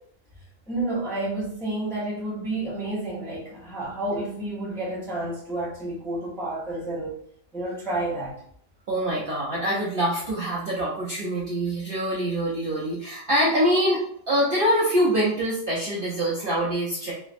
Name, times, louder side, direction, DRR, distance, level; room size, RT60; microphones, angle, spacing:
voice 1, 0.7-7.2 7.5-8.4, right 2 dB, 5° left, -6 dB, 0.4 m, -30 dB
voice 2, 8.9-14.0 14.3-17.1, equal, 60° right, -5 dB, 0.6 m, -24 dB
3.2 x 2.0 x 2.4 m, 0.66 s
omnidirectional pair, 1.5 m